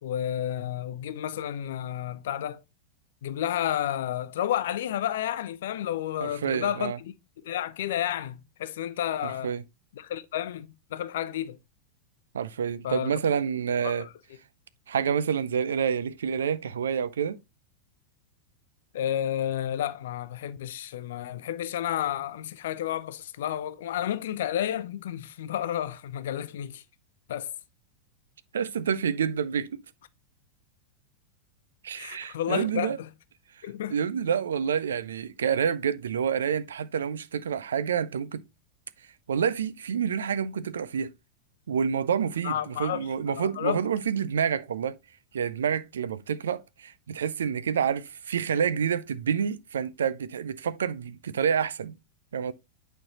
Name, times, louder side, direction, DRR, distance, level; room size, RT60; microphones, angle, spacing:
voice 1, 0.0-2.6 3.2-7.1 7.4-9.5 10.0-11.6 12.8-13.2 13.8-14.1 18.9-26.8 27.3-27.5 32.0-33.1 33.6-34.0 42.4-43.8, left 11 dB, 60° left, 0.5 m, -31 dB
voice 2, 6.2-7.0 9.2-9.6 12.3-14.1 14.9-17.4 28.5-29.8 31.8-33.0 33.9-38.4 39.3-41.1 41.7-45.0 45.3-51.9 52.3-52.5, right 7 dB, 65° right, 0.5 m, -28 dB
8.7 x 4.5 x 2.8 m
figure-of-eight pair, 90°, 0 cm